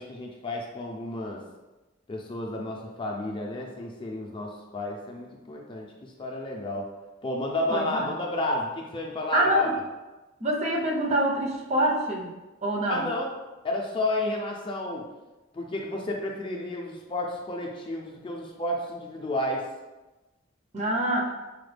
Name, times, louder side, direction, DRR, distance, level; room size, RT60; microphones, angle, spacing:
voice 1, 0.0-1.4 2.1-6.9 7.2-9.7 12.9-13.4 13.6-15.0 15.5-19.7, left 1 dB, 25° left, 0 dB, 0.4 m, -31 dB
voice 2, 7.7-8.1 9.3-9.7 10.4-12.3 12.6-13.1 20.7-21.3, right 1 dB, 35° right, -1 dB, 0.6 m, -25 dB
4.8 x 2.2 x 3.2 m, 1.1 s
head